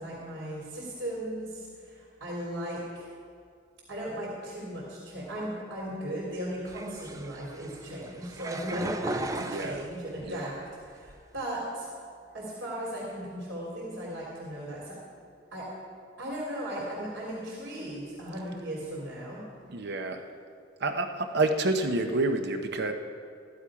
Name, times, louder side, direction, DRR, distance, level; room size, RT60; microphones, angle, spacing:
voice 1, 0.0-3.1 3.9-10.6 10.9-11.9 12.3-15.0 15.5-15.7 16.2-19.4, right 1 dB, 85° right, -6 dB, 3.3 m, -37 dB
sound 1, 6.7-10.3 10.8-11.4, right 2 dB, 20° right, 0.5 m, -37 dB
voice 2, 9.4-9.8 10.3-10.5 19.7-20.2 20.8-22.9, right 2 dB, 65° right, 6 dB, 0.9 m, -28 dB
15.0 x 11.5 x 4.9 m, 2.2 s
head